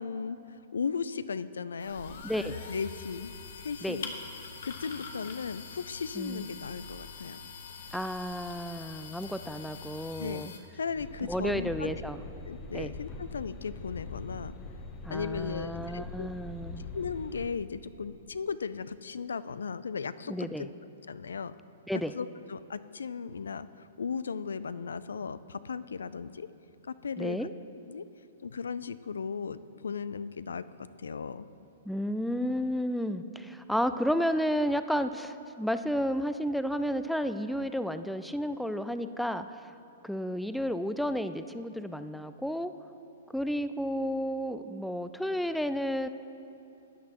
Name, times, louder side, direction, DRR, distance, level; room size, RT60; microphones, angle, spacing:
voice 1, 0.0-4.1 4.6-7.4 10.2-10.4 10.7-11.9 12.4-14.6 15.1-16.3 16.9-20.7 21.1-21.5 22.1-23.7 24.0-26.5 26.9-27.5 27.9-28.0 28.4-30.7 31.0-31.5, left 5 dB, 80° left, 15 dB, 0.3 m, -36 dB
sound 1, 1.8-10.6, left 5 dB, 65° left, 1.0 m, -44 dB
voice 2, 2.2-2.6 3.8-4.0 6.2-6.5 7.9-10.5 11.3-12.2 12.7-12.9 15.0-16.8 20.3-20.7 21.9-22.1 27.2-27.5 31.9-39.6 40.0-42.7 43.3-46.1, equal, ahead, 11 dB, 0.3 m, -32 dB
sound 2, 11.0-17.5, left 3 dB, 30° left, 0.8 m, -43 dB
13.0 x 9.2 x 3.0 m, 2.7 s
hypercardioid pair, 125°, 0 cm